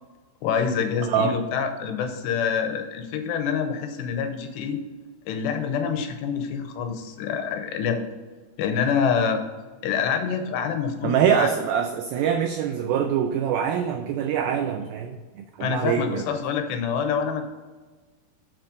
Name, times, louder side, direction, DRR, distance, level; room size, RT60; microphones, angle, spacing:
voice 1, 0.4-4.8 5.3-8.1 8.6-9.4 9.8-11.5 15.6-17.4, left 6 dB, 90° left, 7 dB, 3.0 m, -26 dB
voice 2, 1.0-1.4 11.0-16.3, right 8 dB, 85° right, 5 dB, 2.1 m, -24 dB
7.5 x 6.0 x 5.1 m, 1.3 s
omnidirectional pair, 4.9 m